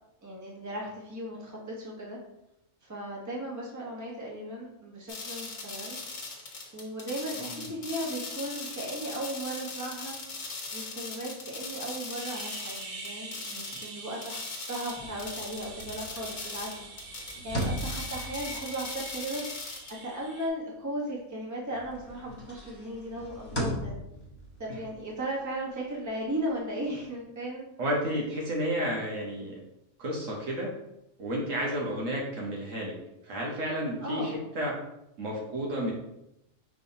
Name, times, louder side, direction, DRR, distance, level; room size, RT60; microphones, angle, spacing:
voice 1, 0.2-2.2 2.8-6.0 6.7-10.2 10.7-16.7 17.4-24.0 24.6-27.7 34.0-34.4, right 1 dB, 15° right, -3 dB, 0.9 m, -36 dB
sound 1, 5.1-13.9 14.2-19.9, left 3 dB, 75° left, 1.3 m, -40 dB
voice 2, 7.5-7.8 23.1-23.2 24.7-24.8 27.8-29.6 30.0-30.7 31.2-32.9 33.2-34.7 35.2-35.9, equal, 70° right, -1 dB, 1.3 m, -31 dB
sound 2, 12.1-20.5, right 3 dB, 50° right, 0.7 m, -44 dB
sound 3, 14.9-21.4 21.7-27.1, equal, 20° left, 1.0 m, -39 dB
5.3 x 3.7 x 2.7 m, 0.85 s
omnidirectional pair, 1.4 m